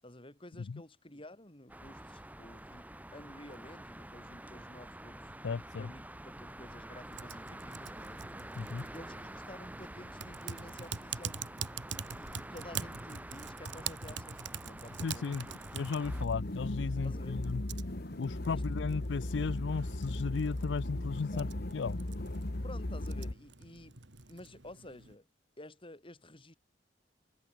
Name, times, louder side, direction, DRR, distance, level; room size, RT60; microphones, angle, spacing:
voice 1, 0.0-5.3 5.8-6.0 6.4-8.2 8.9-11.5 12.1-15.6 17.0-17.4 18.5-19.0 21.3-21.5 22.6-24.0 24.3-25.3 25.6-26.6, left 1 dB, 30° left, 7.3 m, -51 dB
sound 1, 1.7-16.3, right 1 dB, 10° right, 2.9 m, -47 dB
voice 2, 5.4-5.9 8.6-8.8 15.0-15.5 15.7-17.6 18.2-22.0, left 5 dB, 75° left, 0.5 m, -35 dB
Typing, 7.1-25.2, right 6 dB, 75° right, 3.4 m, -46 dB
sound 2, 16.0-23.3, left 1 dB, 60° left, 1.6 m, -37 dB
head